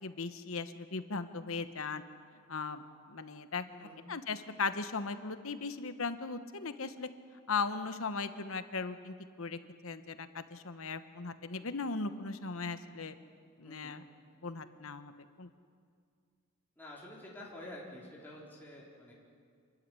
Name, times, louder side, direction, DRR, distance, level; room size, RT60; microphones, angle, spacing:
voice 1, 0.0-2.0 2.5-2.8 3.1-3.7 4.1-7.1 7.5-13.1 13.6-14.0 14.4-15.1 15.4-15.5, left 4 dB, 75° left, 10 dB, 1.2 m, -38 dB
voice 2, 3.7-4.0 13.6-14.0 16.8-19.1, left 1 dB, 10° left, -5 dB, 3.8 m, -49 dB
26.5 x 13.5 x 10.0 m, 2.2 s
head